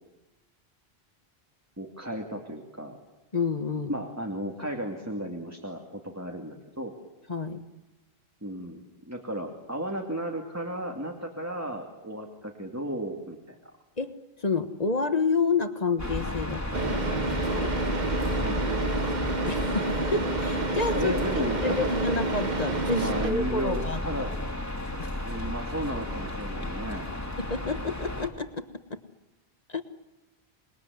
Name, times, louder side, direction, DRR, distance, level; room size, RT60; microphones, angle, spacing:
voice 1, 1.8-3.0 3.9-6.9 8.4-13.7 18.1-18.9 20.9-22.1 22.9-24.3 25.2-27.1, right 1 dB, 15° right, 2 dB, 2.5 m, -34 dB
voice 2, 3.3-4.0 7.3-7.6 14.0-14.1 14.4-17.7 19.5-21.1 21.6-24.0 25.0-25.1 27.4-29.0 29.7-29.8, left 4 dB, 40° left, 9 dB, 1.4 m, -29 dB
sound 1, 16.0-28.3, left 1 dB, 15° left, 2.5 m, -33 dB
Car / Idling, 16.7-23.3, right 3 dB, 45° right, 1.3 m, -29 dB
27.5 x 21.0 x 9.5 m, 1.0 s
omnidirectional pair, 1.1 m